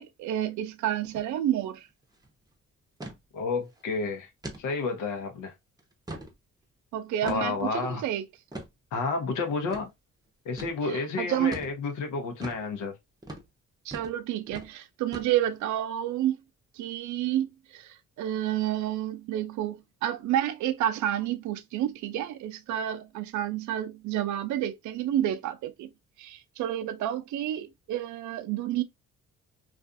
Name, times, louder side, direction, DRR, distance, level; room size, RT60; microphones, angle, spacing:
voice 1, 0.0-1.9 6.9-8.3 10.9-11.6 13.9-16.4 16.8-25.9 26.2-28.8, right 12 dB, 70° right, 0.5 m, -30 dB
sound 1, 1.0-1.3 1.6-1.7 2.0-2.3 3.0-3.2 3.7-3.8 4.4-4.6 5.2-5.3 5.8-6.4 7.3-7.6 8.5-8.7 9.7-9.9 10.6-10.8 11.5-11.8 12.4-12.6 13.2-13.5 13.9-14.2 14.5-14.7 15.1-15.6, right 1 dB, 15° right, 0.7 m, -40 dB
voice 2, 3.3-4.3 4.6-5.5 7.2-8.0 8.9-9.9 10.4-13.0, left 4 dB, 85° left, 0.8 m, -30 dB
2.5 x 2.4 x 2.4 m
cardioid pair, 90°, 30 cm